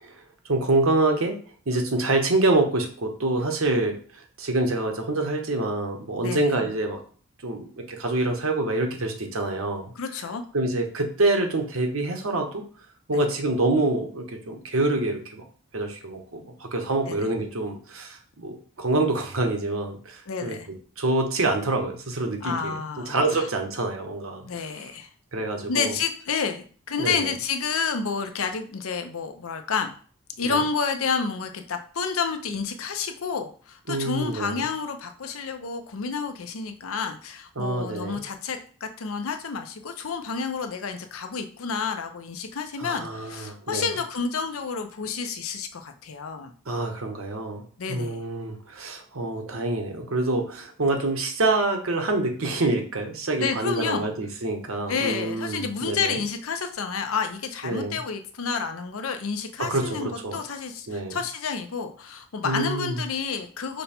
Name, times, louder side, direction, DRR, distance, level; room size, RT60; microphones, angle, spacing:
voice 1, 0.5-1.4 1.7-7.0 7.4-9.9 10.5-12.6 13.1-15.4 15.7-20.6 21.0-22.8 23.0-24.4 24.7-24.8 25.3-26.0 27.0-27.3 30.4-30.6 33.9-34.6 37.6-38.2 42.8-43.9 46.7-47.6 47.9-56.2 57.6-58.0 59.6-60.4 60.9-61.2 62.4-63.0, right 2 dB, 75° right, 3 dB, 0.9 m, -26 dB
voice 2, 6.2-6.6 10.0-10.4 13.1-13.3 17.1-17.2 20.3-20.7 22.4-23.2 24.5-25.1 25.7-29.9 30.4-46.5 47.8-48.2 53.4-54.1 54.9-63.8, left 5 dB, 75° left, 7 dB, 0.6 m, -30 dB
5.3 x 2.2 x 4.3 m, 0.43 s
head